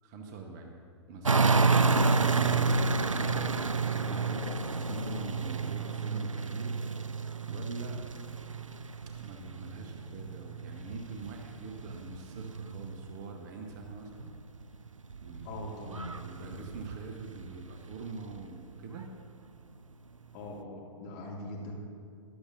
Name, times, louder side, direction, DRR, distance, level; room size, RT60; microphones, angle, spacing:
voice 1, 0.0-0.8 1.1-1.4 2.1-3.5 4.0-6.8 7.5-8.0 9.2-14.3 15.2-15.6 16.2-19.1, right 4 dB, 35° right, 3 dB, 1.0 m, -44 dB
sound 1, 1.2-13.2 13.6-18.4 19.0-19.1, right 4 dB, 90° right, 0.4 m, -30 dB
voice 2, 15.4-16.5 20.3-21.7, left 1 dB, 35° left, -3 dB, 2.2 m, -41 dB
13.5 x 11.5 x 2.6 m, 2.4 s
figure-of-eight pair, 115°, 16 cm